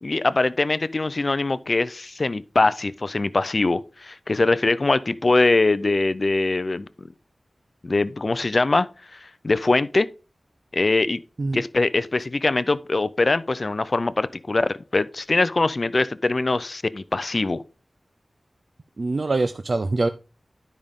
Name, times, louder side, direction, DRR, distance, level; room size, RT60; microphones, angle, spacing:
voice 1, 0.0-6.9 7.8-8.9 9.1-10.1 10.7-11.2 11.5-17.6, left 3 dB, 45° left, 0.4 m, -22 dB
voice 2, 19.0-20.1, right 3 dB, 55° right, 0.4 m, -24 dB
12.0 x 5.1 x 3.5 m
wide cardioid pair, 85°, 0 cm